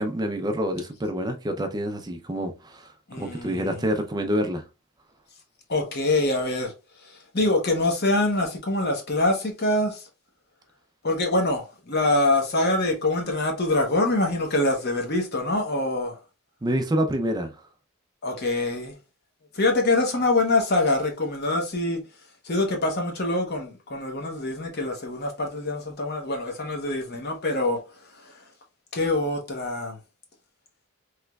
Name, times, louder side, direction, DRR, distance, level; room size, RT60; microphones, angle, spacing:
voice 1, 0.0-2.9 3.2-4.7 16.6-17.5, equal, 20° right, 0.4 m, -27 dB
voice 2, 3.1-3.9 5.7-6.7 7.0-10.0 11.0-16.2 18.2-19.0 19.5-22.0 22.4-27.8 28.2-28.4 28.9-30.0, left 2 dB, 45° left, 0.8 m, -25 dB
3.3 x 3.0 x 2.2 m
head